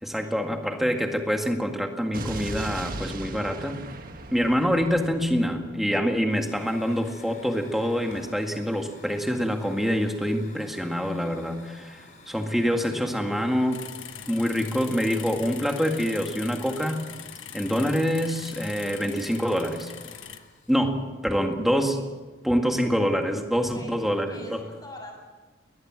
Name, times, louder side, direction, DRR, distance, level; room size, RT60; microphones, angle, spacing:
voice 1, 0.0-3.8 4.3-13.9 14.3-17.0 17.5-19.9 20.7-22.0 22.4-24.4, equal, ahead, 4 dB, 1.9 m, -26 dB
Explosion, 2.1-6.2, right 2 dB, 45° right, 1.7 m, -38 dB
Hiss / Fire, 6.3-20.8, left 2 dB, 40° left, 4.8 m, -51 dB
sound 1, 13.7-20.4, left 9 dB, 80° left, 1.3 m, -42 dB
voice 2, 23.5-25.2, left 1 dB, 20° left, 1 dB, 6.5 m, -44 dB
22.0 x 19.5 x 7.6 m, 1.3 s
head